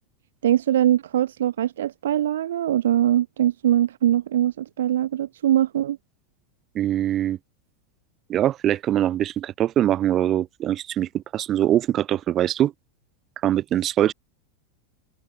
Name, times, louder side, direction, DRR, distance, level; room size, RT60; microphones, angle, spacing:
voice 1, 0.4-6.0, right 11 dB, 75° right, 1.2 m, -22 dB
voice 2, 6.7-7.4 8.3-12.7 13.4-14.1, right 11 dB, 35° right, 7.9 m, -22 dB
hypercardioid pair, 90°, 0 cm